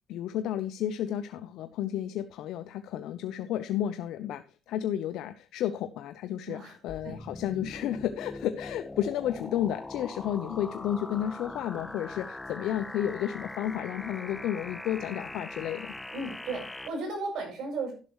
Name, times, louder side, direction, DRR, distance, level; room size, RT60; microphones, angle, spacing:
voice 1, 0.1-4.4 4.7-15.9, left 11 dB, 85° left, 10 dB, 0.7 m, -32 dB
sound 1, 6.9-16.9, left 2 dB, 15° left, 1.3 m, -41 dB
voice 2, 16.1-17.9, right 3 dB, 75° right, 2 dB, 7.3 m, -35 dB
11.5 x 11.0 x 3.1 m, 0.36 s
cardioid pair, 90°, 0 cm